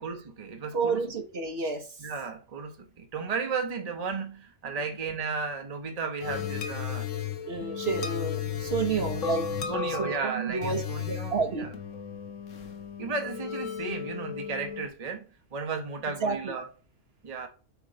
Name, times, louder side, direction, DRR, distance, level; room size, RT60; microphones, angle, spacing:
voice 1, 0.0-1.1 2.0-7.1 9.7-11.8 12.6-12.7 13.0-16.7 17.2-17.5, right 4 dB, 35° right, 1.0 m, -34 dB
voice 2, 0.7-1.9 7.5-10.8 11.1-11.7 16.2-16.5, right 4 dB, 55° right, 1.2 m, -30 dB
sound 1, 6.2-14.8, left 8 dB, 85° left, 1.4 m, -34 dB
8.1 x 3.1 x 4.9 m
omnidirectional pair, 1.3 m